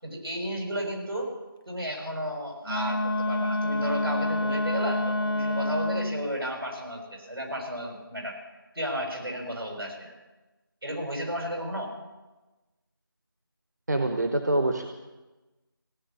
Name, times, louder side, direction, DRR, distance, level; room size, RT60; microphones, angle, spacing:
voice 1, 0.0-1.3 1.7-8.4 8.7-10.1 10.8-11.9, equal, 85° right, 1 dB, 5.9 m, -33 dB
Wind instrument woodwind instrument, 2.7-6.3, left 1 dB, 80° left, 1.4 m, -28 dB
voice 2, 13.9-14.8, right 2 dB, 50° right, 5 dB, 1.1 m, -25 dB
16.5 x 7.8 x 9.5 m, 1.1 s
figure-of-eight pair, 175°, 12 cm